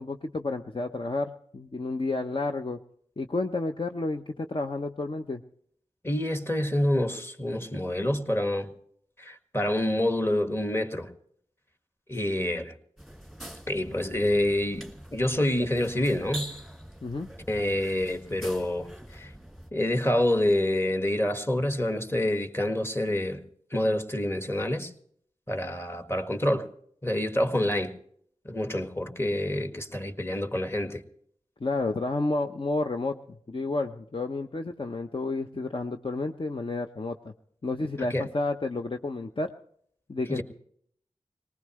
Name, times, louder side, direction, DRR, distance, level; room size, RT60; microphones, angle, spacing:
voice 1, 0.0-2.8 3.2-5.4 17.0-17.3 31.6-37.3 37.6-39.5 40.1-40.4, left 2 dB, 45° left, 5 dB, 0.8 m, -31 dB
voice 2, 6.0-8.7 9.2-11.1 12.1-12.7 13.7-16.5 17.5-18.9 19.1-19.3 19.7-23.4 23.7-24.9 25.5-26.7 27.0-27.9 28.5-31.0 38.1-38.3 40.3-40.4, left 1 dB, 20° left, 7 dB, 1.8 m, -27 dB
sound 1, 13.0-19.7, right 1 dB, ahead, 2.0 m, -44 dB
20.0 x 19.5 x 3.2 m, 0.65 s
cardioid pair, 40°, 12 cm